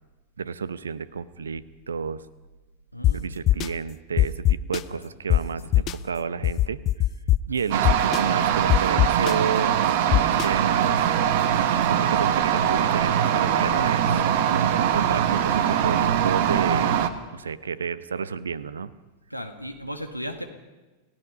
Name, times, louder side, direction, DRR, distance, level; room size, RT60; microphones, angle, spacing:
voice 1, 0.4-2.2 3.1-6.8 7.5-9.9 10.2-11.0 11.8-14.2 14.9-16.9 17.3-18.9, right 6 dB, 70° right, 17 dB, 0.9 m, -31 dB
voice 2, 2.9-3.2 4.9-5.1 5.7-5.9 7.5-7.7 19.3-20.4, equal, 90° right, 8 dB, 1.6 m, -36 dB
sound 1, 3.0-3.1 3.5-3.7 4.2-4.8 5.3-5.4 5.7-5.9 6.4-7.4 7.8-8.2 8.7-9.3 10.1-10.5, left 14 dB, 35° left, 0.6 m, -19 dB
sound 2, 7.7-17.1, right 9 dB, 50° right, 1.3 m, -22 dB
29.5 x 16.5 x 5.5 m, 1.2 s
figure-of-eight pair, 90°, 0 cm